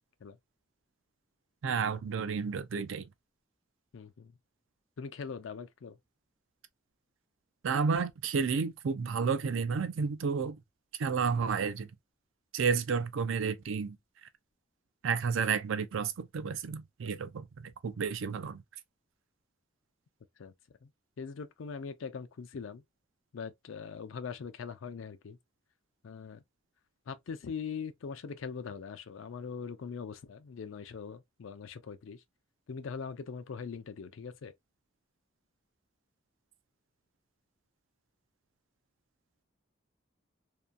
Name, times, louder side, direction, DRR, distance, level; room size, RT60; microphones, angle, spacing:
voice 1, 1.6-3.1 7.6-10.6 11.0-11.9 12.5-14.0 15.0-18.6, right 5 dB, 75° right, 0.4 m, -31 dB
voice 2, 3.9-4.3 5.0-6.0 20.4-20.5 20.8-20.9 21.2-22.8 23.3-25.4 26.0-26.4 27.1-32.2 32.7-34.5, left 6 dB, 75° left, 0.4 m, -41 dB
2.8 x 2.2 x 2.3 m
head